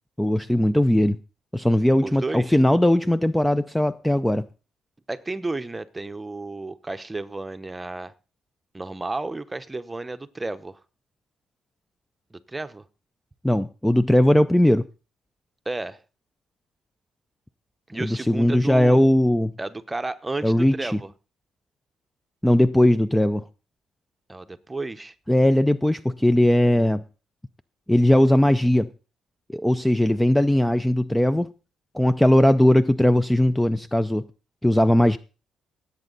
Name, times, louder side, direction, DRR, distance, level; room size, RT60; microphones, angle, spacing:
voice 1, 0.2-1.2 1.5-4.5 13.4-14.8 18.0-19.5 20.4-21.0 22.4-23.4 25.3-27.0 27.9-28.9 29.5-31.5 31.9-34.3 34.6-35.2, left 1 dB, 5° left, 0.5 m, -19 dB
voice 2, 2.0-2.6 5.1-8.1 8.7-10.8 12.3-12.9 15.6-16.0 17.9-19.0 19.6-21.1 24.3-25.1, right 2 dB, 15° right, 0.9 m, -32 dB
17.5 x 8.2 x 4.0 m
cardioid pair, 90°, 0 cm